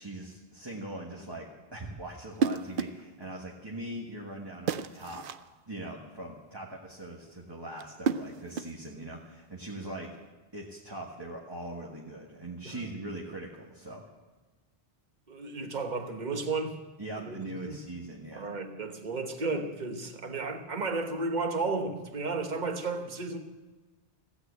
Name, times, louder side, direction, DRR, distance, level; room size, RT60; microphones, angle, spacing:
voice 1, 0.0-5.3 5.7-10.1 10.5-14.1 17.0-18.5, right 1 dB, 20° right, 1.6 m, -41 dB
sound 1, 2.3-3.1 4.7-5.5 7.8-8.9, right 6 dB, 60° right, 0.7 m, -31 dB
voice 2, 15.3-16.8 17.2-17.8 18.3-23.4, right 3 dB, 40° right, 1.3 m, -33 dB
16.0 x 8.5 x 8.2 m
omnidirectional pair, 1.1 m